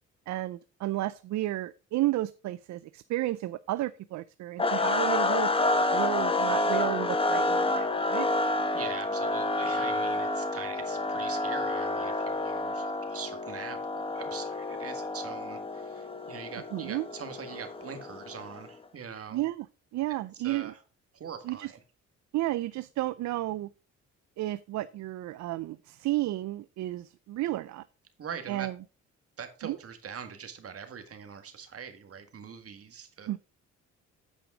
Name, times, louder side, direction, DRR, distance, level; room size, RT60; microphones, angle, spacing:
voice 1, 0.3-8.3 16.7-17.0 19.3-19.7 19.9-20.7 21.4-21.7 22.3-23.7 24.4-27.8 28.5-28.7 29.6-29.8 33.3-33.4, right 16 dB, 65° right, 16 dB, 0.5 m, -32 dB
sound 1, 4.6-18.7, left 2 dB, 20° left, 1.0 m, -29 dB
voice 2, 8.7-19.4 20.4-20.8 21.1-21.8 28.2-28.7 29.4-33.3, right 7 dB, 50° right, 8 dB, 1.8 m, -43 dB
9.0 x 5.1 x 4.8 m, 0.34 s
cardioid pair, 90°, 30 cm